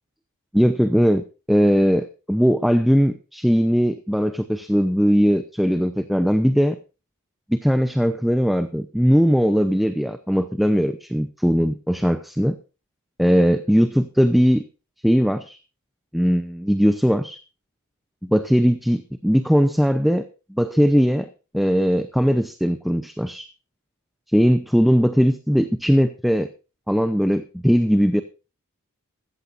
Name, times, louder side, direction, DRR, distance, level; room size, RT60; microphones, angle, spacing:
voice 1, 0.5-6.8 7.5-12.6 13.2-14.6 15.0-15.6 16.1-17.4 18.2-21.3 21.5-23.5 24.3-26.5 26.9-28.2, equal, ahead, 9 dB, 0.7 m, -19 dB
15.5 x 14.5 x 2.6 m, 0.32 s
head